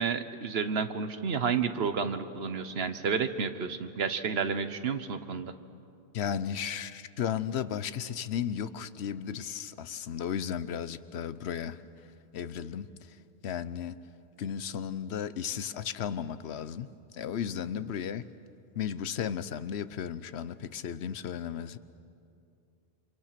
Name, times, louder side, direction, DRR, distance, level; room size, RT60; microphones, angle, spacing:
voice 1, 0.0-5.5, right 6 dB, 70° right, 10 dB, 1.3 m, -31 dB
voice 2, 6.1-11.8 12.3-13.2 13.4-14.0 14.4-18.3 18.8-21.8, left 8 dB, 85° left, 14 dB, 1.0 m, -34 dB
28.5 x 25.5 x 5.9 m, 2.5 s
omnidirectional pair, 1.1 m